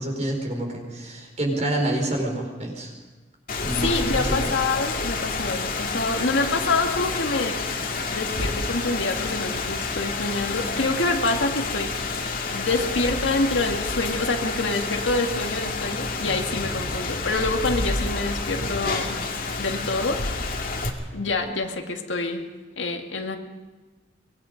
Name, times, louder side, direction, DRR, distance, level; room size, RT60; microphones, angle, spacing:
voice 1, 0.0-2.9 3.6-4.5, right 1 dB, 40° right, 1 dB, 4.6 m, -27 dB
Rain, 3.5-20.9, left 3 dB, 50° left, 2.2 m, -29 dB
voice 2, 3.8-7.6 8.1-12.2 12.5-19.2 19.6-20.7 21.1-22.5 22.8-23.4, left 3 dB, 90° left, 3 dB, 2.0 m, -26 dB
24.0 x 20.5 x 5.2 m, 1.3 s
head